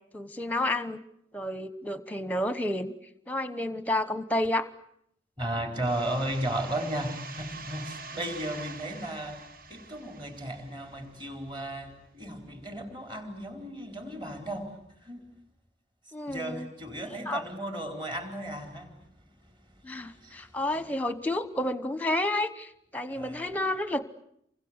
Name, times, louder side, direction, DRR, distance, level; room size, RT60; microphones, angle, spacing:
voice 1, 0.1-1.0 1.3-2.9 3.3-4.7 16.1-16.7 17.3-17.4 19.8-24.0, left 1 dB, 10° left, 1.0 m, -30 dB
voice 2, 5.4-9.4 9.7-15.2 16.0-20.9 23.1-23.5, right 1 dB, 25° right, 4.3 m, -35 dB
sound 1, 5.8-11.3, right 4 dB, 45° right, 1.4 m, -45 dB
29.0 x 24.5 x 8.1 m
head